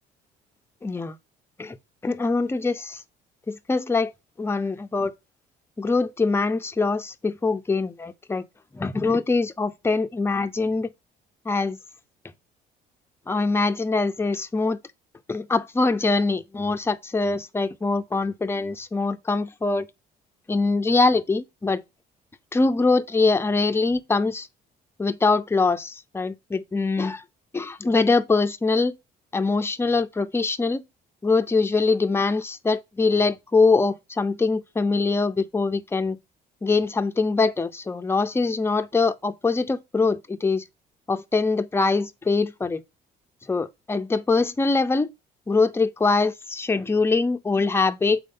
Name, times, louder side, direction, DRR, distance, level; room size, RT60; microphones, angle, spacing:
voice 1, 0.8-1.2 1.6-1.8 2.0-3.0 3.5-4.1 4.4-5.1 5.8-8.4 8.7-10.9 11.5-11.8 13.3-14.8 15.3-19.9 20.5-21.8 22.5-24.5 25.0-27.2 27.5-28.9 29.3-30.8 31.2-36.2 36.6-40.6 41.1-42.8 43.5-45.1 45.5-48.2, left 3 dB, 15° left, 0.6 m, -23 dB
5.3 x 4.3 x 5.4 m
cardioid pair, 110°, 17 cm